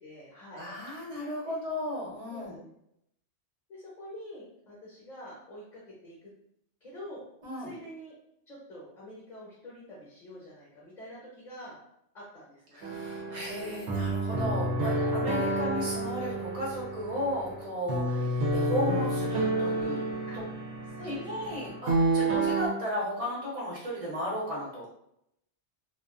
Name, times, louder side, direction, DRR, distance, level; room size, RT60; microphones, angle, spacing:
voice 1, 0.0-0.7 1.4-1.6 2.3-2.7 3.7-6.3 6.8-7.2 7.6-8.1 8.5-11.8 12.1-12.9 15.4-15.7 18.0-18.3 20.3-20.4 20.9-21.6 22.2-22.5, equal, 45° left, -7 dB, 0.8 m, -46 dB
voice 2, 0.5-2.6 7.4-7.7 12.7-18.1 18.5-20.0 20.3-20.4 21.0-24.9, equal, 35° right, -5 dB, 0.8 m, -34 dB
sound 1, 12.8-22.7, right 2 dB, 80° right, 0.9 m, -30 dB
2.3 x 2.3 x 2.3 m, 0.76 s
omnidirectional pair, 1.2 m